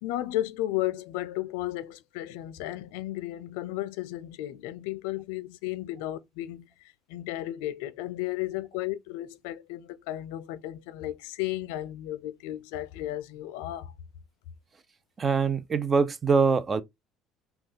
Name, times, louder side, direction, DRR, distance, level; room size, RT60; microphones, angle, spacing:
voice 1, 0.0-13.9, left 15 dB, 85° left, 0.3 m, -34 dB
voice 2, 15.2-16.8, right 5 dB, 35° right, 0.5 m, -23 dB
3.1 x 2.2 x 3.1 m
supercardioid pair, 75°, 0 cm